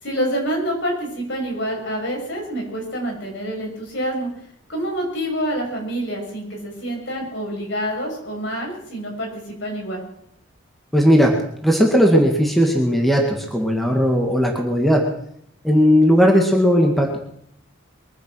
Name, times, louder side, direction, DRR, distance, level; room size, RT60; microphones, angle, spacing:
voice 1, 0.0-4.3 4.7-10.0, equal, 60° left, -1 dB, 6.5 m, -27 dB
voice 2, 10.9-11.3 11.6-15.0 15.6-17.2, equal, ahead, 0 dB, 1.9 m, -16 dB
22.5 x 10.0 x 6.3 m, 0.70 s
head